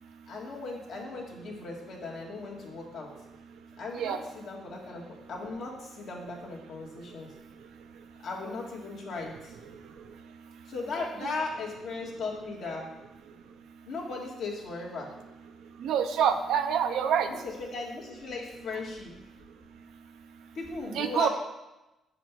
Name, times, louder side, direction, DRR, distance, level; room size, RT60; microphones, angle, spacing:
voice 1, 0.3-3.1 3.8-7.3 8.2-9.6 10.7-12.9 13.9-15.1 17.2-19.1 20.5-21.3, left 3 dB, 70° left, -2 dB, 2.0 m, -37 dB
voice 2, 15.8-17.3 20.9-21.3, right 8 dB, 80° right, 7 dB, 0.7 m, -26 dB
7.0 x 4.9 x 6.0 m, 1.0 s
cardioid pair, 90°, 0 cm